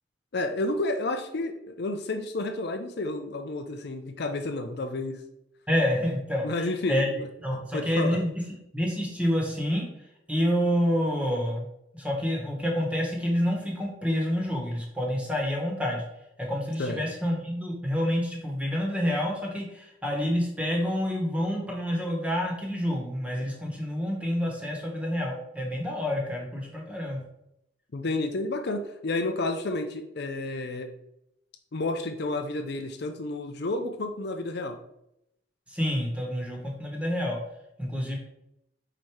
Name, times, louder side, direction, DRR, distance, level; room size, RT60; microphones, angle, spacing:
voice 1, 0.3-5.2 6.4-8.2 16.8-17.1 27.9-30.9 31.7-34.8, left 2 dB, 60° left, 6 dB, 0.6 m, -31 dB
voice 2, 5.7-6.4 6.9-7.1 7.4-8.4 8.7-9.8 10.3-11.7 11.9-16.0 16.4-27.2 35.7-37.4 37.8-38.2, equal, 5° right, -1 dB, 1.5 m, -28 dB
5.0 x 4.4 x 4.7 m, 0.81 s
head